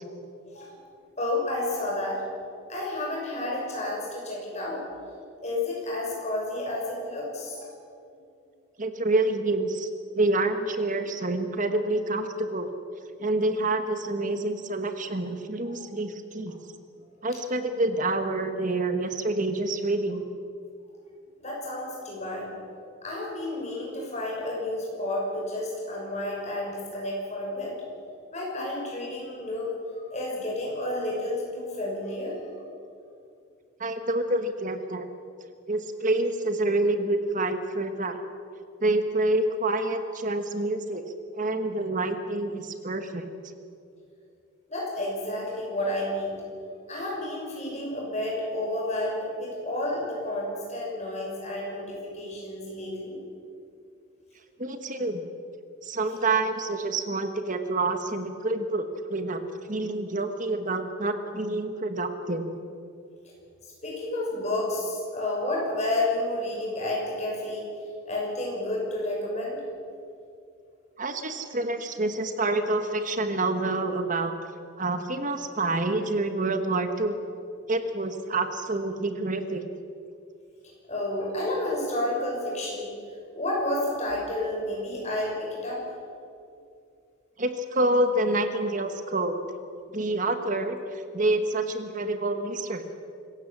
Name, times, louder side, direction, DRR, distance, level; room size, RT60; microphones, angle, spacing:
voice 1, 0.5-0.8 1.2-2.2 2.7-4.8 5.4-7.7 15.6-15.8 21.4-22.5 23.0-27.8 28.3-29.7 29.9-32.4 44.7-46.4 46.9-53.2 63.8-67.6 68.0-69.6 80.9-82.9 83.3-85.8, left 1 dB, 30° left, -2 dB, 6.5 m, -31 dB
voice 2, 8.8-12.7 13.2-16.6 17.2-20.3 33.8-35.1 35.7-38.2 38.8-41.0 41.3-43.3 54.6-55.2 55.8-62.5 71.0-74.3 74.8-77.2 77.7-79.6 87.4-89.4 89.9-92.9, right 2 dB, 35° right, 8 dB, 1.3 m, -27 dB
25.5 x 15.5 x 7.4 m, 2.5 s
head